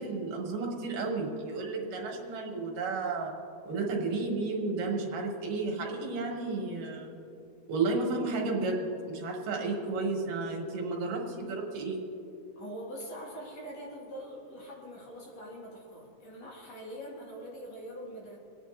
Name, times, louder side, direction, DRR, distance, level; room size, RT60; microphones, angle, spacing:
voice 1, 0.0-3.3 3.7-7.1 7.7-12.0, right 3 dB, 85° right, 0 dB, 3.1 m, -32 dB
voice 2, 12.6-18.4, equal, 55° left, -4 dB, 3.2 m, -43 dB
27.5 x 9.5 x 2.7 m, 2.8 s
omnidirectional pair, 3.7 m